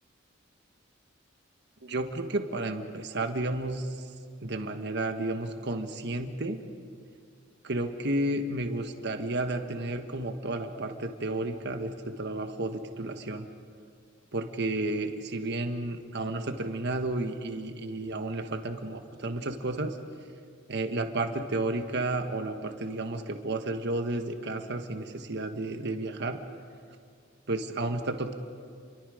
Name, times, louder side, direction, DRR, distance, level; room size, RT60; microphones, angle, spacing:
voice 1, 1.8-4.0 4.4-6.6 7.6-13.5 14.3-20.0 20.7-26.4 27.5-28.3, right 2 dB, 60° right, 6 dB, 1.4 m, -32 dB
30.0 x 23.5 x 5.0 m, 2.2 s
head